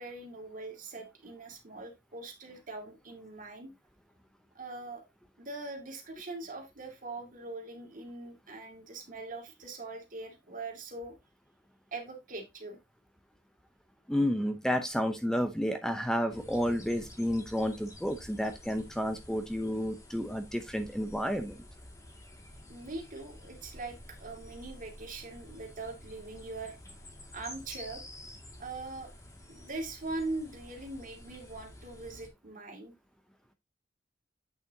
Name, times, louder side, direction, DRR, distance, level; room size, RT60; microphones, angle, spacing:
voice 1, 0.0-3.7 4.5-5.0 5.4-11.2 11.9-12.8 22.7-26.8 27.3-28.0 28.6-29.1 29.5-32.9, right 2 dB, 50° right, 2.3 m, -42 dB
voice 2, 14.1-21.6, equal, 5° left, 0.7 m, -31 dB
sound 1, 16.3-32.3, left 1 dB, 20° left, 2.1 m, -50 dB
8.5 x 6.7 x 2.8 m
head